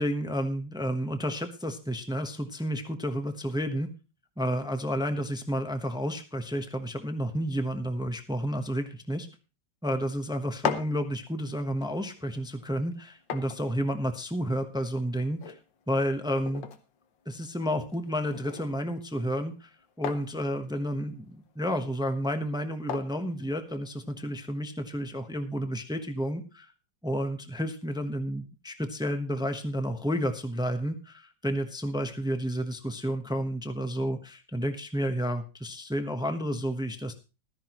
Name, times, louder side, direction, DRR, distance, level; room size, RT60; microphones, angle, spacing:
voice 1, 0.0-3.9 4.4-9.3 9.8-15.6 15.9-16.7 17.3-19.7 20.0-26.7 27.0-37.1, equal, 5° right, 7 dB, 0.6 m, -31 dB
sound 1, 10.4-24.2, left 8 dB, 80° left, 1.8 m, -41 dB
15.0 x 13.0 x 3.0 m, 0.31 s
omnidirectional pair, 2.0 m